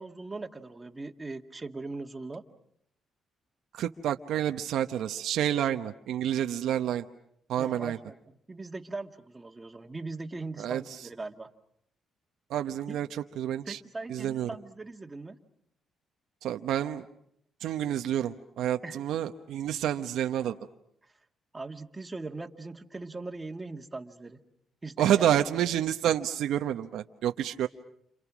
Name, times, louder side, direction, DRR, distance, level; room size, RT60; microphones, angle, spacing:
voice 1, 0.0-2.4 7.6-11.5 12.9-13.0 13.7-15.4 18.8-19.0 21.0-21.1 21.5-24.4 24.8-25.4, right 3 dB, 20° right, 5 dB, 1.9 m, -40 dB
voice 2, 3.7-7.1 7.5-8.0 10.6-10.8 12.5-13.8 14.1-14.5 16.4-17.0 17.6-20.6 25.0-27.7, right 11 dB, 80° right, 6 dB, 1.0 m, -29 dB
30.0 x 27.5 x 6.2 m, 0.72 s
cardioid pair, 90°, 0 cm